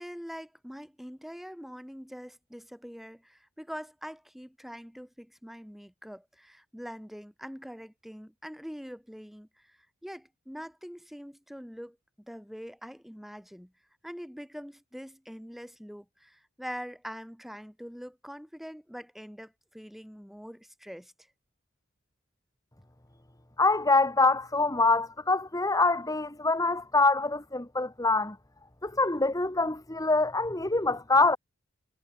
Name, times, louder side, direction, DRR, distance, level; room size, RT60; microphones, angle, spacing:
voice 1, 0.0-9.8 10.0-13.7 14.0-21.1, equal, ahead, 5.2 m, -44 dB
voice 2, 23.6-28.4 28.8-31.4, left 3 dB, 15° left, 1.7 m, -25 dB
head